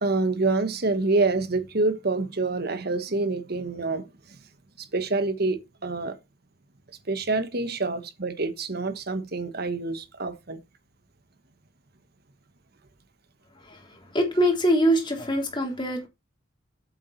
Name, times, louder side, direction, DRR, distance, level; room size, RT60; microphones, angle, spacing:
voice 1, 0.0-4.4 4.8-6.2 7.1-10.6, right 3 dB, 55° right, 1.3 m, -27 dB
voice 2, 14.1-16.1, equal, 25° left, 3.4 m, -23 dB
8.2 x 7.4 x 4.2 m
head